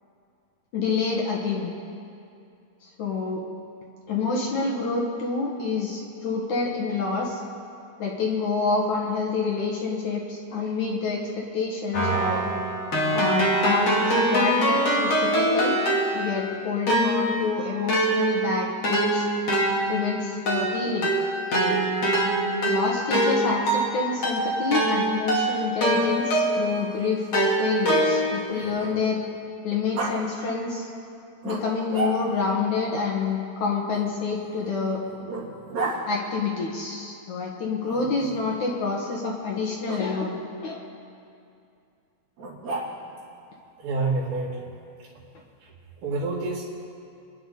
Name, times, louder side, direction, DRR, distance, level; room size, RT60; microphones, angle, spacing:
voice 1, 0.7-1.7 3.0-3.4 4.1-7.4 8.0-12.4 13.1-15.8 16.1-19.3 19.9-21.1 21.6-21.8 22.7-29.2 29.6-30.9 31.4-35.0 36.0-40.4 40.6-40.8, left 4 dB, 60° left, -2 dB, 2.5 m, -27 dB
Keyboard (musical), 11.9-16.5 16.9-26.8 27.3-28.5, right 1 dB, 40° left, 3.6 m, -24 dB
Growling, 25.9-29.3 29.9-30.1 31.4-32.5 33.9-36.0 37.8-38.5 39.8-40.0 42.4-43.2, right 2 dB, 50° right, 4.3 m, -35 dB
voice 2, 43.8-44.7 46.0-46.6, right 3 dB, 75° right, -9 dB, 3.8 m, -27 dB
30.0 x 10.0 x 4.0 m, 2.5 s
omnidirectional pair, 4.4 m